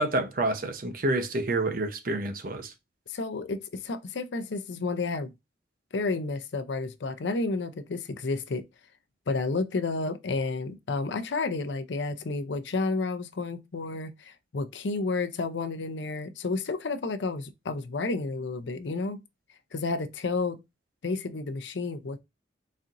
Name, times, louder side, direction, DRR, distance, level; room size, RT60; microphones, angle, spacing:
voice 1, 0.0-2.7, right 2 dB, 50° right, 0.7 m, -28 dB
voice 2, 3.1-5.3 5.9-8.6 9.3-19.2 19.7-20.6 21.0-22.2, left 3 dB, 80° left, 0.5 m, -31 dB
4.2 x 2.6 x 3.6 m
head